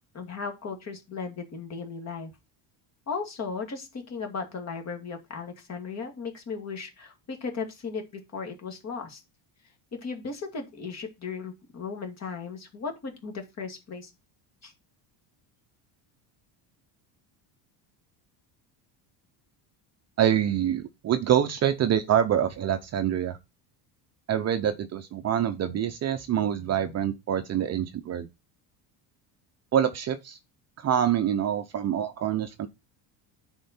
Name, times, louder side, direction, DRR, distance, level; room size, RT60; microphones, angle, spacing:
voice 1, 0.0-2.3 3.1-9.2 9.9-14.1 14.6-14.7, left 5 dB, 35° left, 2.3 m, -36 dB
voice 2, 20.2-23.4 24.3-28.3 29.7-30.4 30.8-32.7, right 10 dB, 35° right, 0.7 m, -26 dB
10.0 x 4.4 x 4.3 m
cardioid pair, 155°, 46 cm